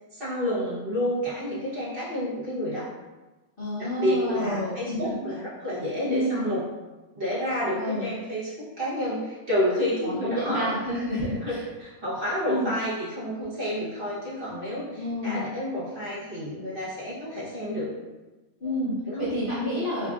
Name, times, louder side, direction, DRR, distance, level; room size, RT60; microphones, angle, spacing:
voice 1, 0.1-2.9 3.8-6.6 7.1-10.7 11.4-17.9 19.1-19.3, equal, 40° right, -9 dB, 1.0 m, -29 dB
voice 2, 3.6-5.1 6.0-6.5 7.8-8.1 10.0-11.6 12.5-12.7 14.9-15.4 18.6-20.1, equal, 45° left, -9 dB, 0.7 m, -29 dB
4.7 x 2.5 x 2.3 m, 1.1 s
omnidirectional pair, 1.7 m